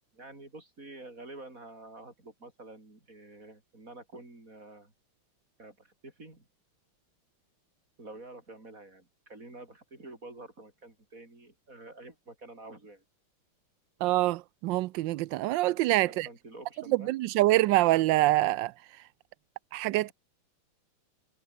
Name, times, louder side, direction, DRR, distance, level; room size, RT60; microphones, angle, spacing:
voice 1, 0.1-4.9 5.6-6.5 8.0-13.0 16.0-17.1 20.0-20.1, right 2 dB, 35° right, 6.4 m, -48 dB
voice 2, 14.0-16.3 17.1-18.7 19.7-20.1, right 17 dB, 75° right, 1.1 m, -25 dB
omnidirectional pair, 2.4 m